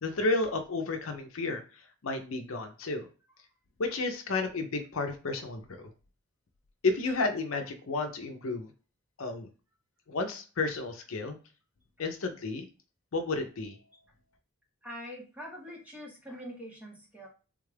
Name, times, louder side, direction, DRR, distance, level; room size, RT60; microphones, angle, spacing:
voice 1, 0.0-3.1 3.8-5.9 6.8-8.7 9.2-9.5 10.1-11.4 12.0-12.7 13.1-13.8, left 3 dB, 70° left, 6 dB, 0.6 m, -32 dB
voice 2, 14.8-17.3, equal, 5° right, -1 dB, 0.9 m, -44 dB
3.5 x 2.3 x 3.2 m, 0.35 s
head